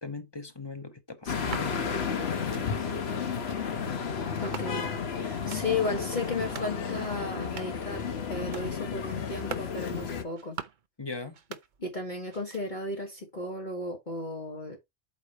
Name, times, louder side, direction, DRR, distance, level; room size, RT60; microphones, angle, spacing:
voice 1, 0.0-3.0 11.0-11.4, left 3 dB, 20° left, 1.0 m, -40 dB
sound 1, 1.3-10.2, left 6 dB, 55° left, 1.2 m, -32 dB
sound 2, 1.3-1.7 2.3-2.7 3.3-3.6 4.4-5.0 5.3-5.7 6.3-6.8 7.3-7.9 8.3-8.7 9.3-9.7 10.3-10.9 11.3-12.0 12.3-12.9, right 7 dB, 45° right, 0.7 m, -44 dB
voice 2, 4.4-4.9 5.1-10.6 11.8-14.8, left 3 dB, 35° left, 1.7 m, -34 dB
8.3 x 3.2 x 5.5 m
omnidirectional pair, 1.4 m